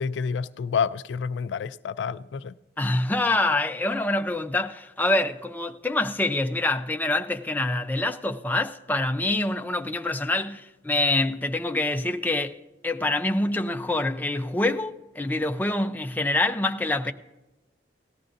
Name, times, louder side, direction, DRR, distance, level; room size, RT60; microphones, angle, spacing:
voice 1, 0.0-2.5, left 6 dB, 70° left, 0.3 m, -29 dB
voice 2, 2.8-12.6 12.8-17.1, left 2 dB, 10° left, 0.5 m, -26 dB
17.5 x 13.5 x 2.6 m
head